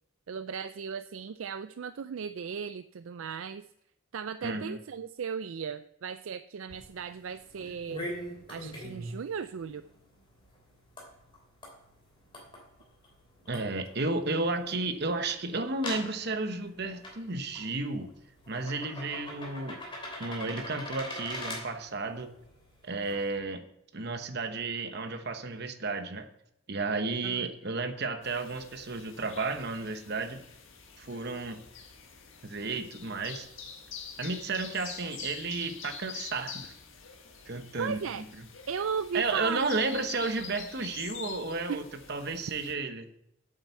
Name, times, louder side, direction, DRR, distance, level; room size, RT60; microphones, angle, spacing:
voice 1, 0.3-3.6 4.1-8.0 8.5-9.8 27.2-27.5 37.8-38.2 38.7-39.7 40.2-40.4 41.7-41.8, right 6 dB, 70° right, 12 dB, 0.4 m, -36 dB
voice 2, 4.4-4.8 13.5-18.1 18.5-19.8 20.2-22.3 22.8-23.7 23.9-26.3 26.7-30.4 31.0-31.6 32.4-33.5 34.2-36.7 37.5-38.2 39.1-43.1, right 3 dB, 50° right, 8 dB, 1.1 m, -33 dB
sound 1, 6.7-23.3, left 1 dB, 25° left, 3.0 m, -44 dB
sound 2, 28.2-42.7, left 6 dB, 65° left, 1.8 m, -46 dB
8.7 x 8.1 x 6.8 m, 0.79 s
head